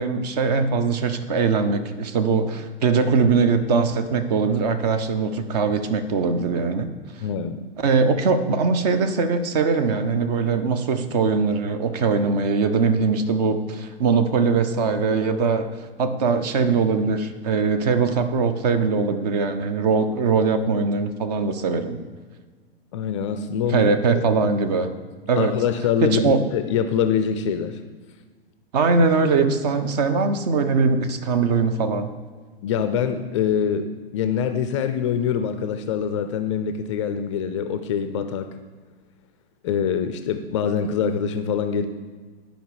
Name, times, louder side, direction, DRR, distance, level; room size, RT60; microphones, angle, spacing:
voice 1, 0.0-6.9 7.8-15.7 16.0-22.0 23.7-24.9 25.3-25.5 26.0-26.4 28.7-32.1, right 4 dB, 40° right, 9 dB, 0.8 m, -21 dB
voice 2, 7.2-7.6 22.9-23.9 25.4-27.8 32.6-33.9 34.1-38.5 39.6-41.9, left 7 dB, 30° left, 9 dB, 0.4 m, -24 dB
10.5 x 5.1 x 4.8 m, 1.5 s
figure-of-eight pair, 105°, 31 cm